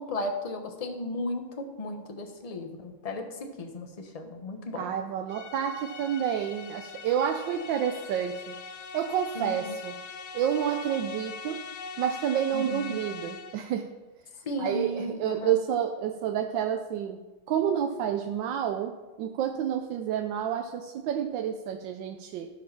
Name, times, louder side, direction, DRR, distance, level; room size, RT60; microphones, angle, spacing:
voice 1, 0.0-4.9 9.3-9.7 12.5-13.0 14.4-15.6, left 1 dB, 30° left, 5 dB, 0.7 m, -35 dB
voice 2, 4.8-8.6 8.9-9.9 10.3-11.6 12.0-13.9 14.6-17.2 17.5-22.5, right 9 dB, 80° right, 5 dB, 1.3 m, -29 dB
sound 1, 5.3-13.8, left 5 dB, 65° left, 0.7 m, -42 dB
13.5 x 4.9 x 5.8 m, 1.2 s
omnidirectional pair, 2.0 m